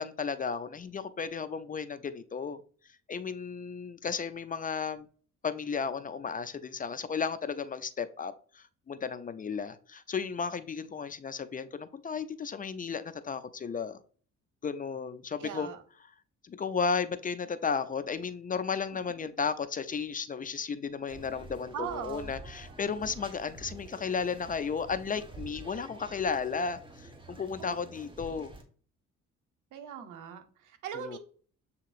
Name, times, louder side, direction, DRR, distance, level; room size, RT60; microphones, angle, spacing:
voice 1, 0.0-2.6 3.1-5.1 5.4-14.0 14.6-15.7 16.4-28.5 30.9-31.2, left 5 dB, 30° left, 0.4 m, -34 dB
voice 2, 15.4-15.8 21.7-22.3 27.6-27.8 29.7-31.2, right 8 dB, 85° right, 0.8 m, -40 dB
sound 1, 21.1-28.6, right 2 dB, 15° right, 1.2 m, -48 dB
7.4 x 2.9 x 2.4 m
cardioid pair, 90°, 30 cm